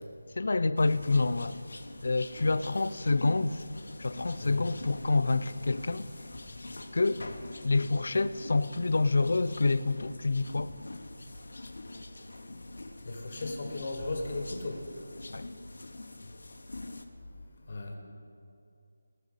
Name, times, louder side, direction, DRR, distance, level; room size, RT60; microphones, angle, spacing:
voice 1, 0.4-1.6 2.0-3.6 4.0-6.1 6.9-7.2 7.6-10.7 15.3-15.5, left 3 dB, 45° left, 14 dB, 0.4 m, -27 dB
sound 1, 0.8-17.1, left 2 dB, 60° left, 1.0 m, -44 dB
voice 2, 4.4-4.7 13.1-14.8 17.7-17.9, left 2 dB, 30° left, 1 dB, 1.4 m, -36 dB
18.0 x 6.7 x 6.6 m, 2.5 s
figure-of-eight pair, 180°, 0 cm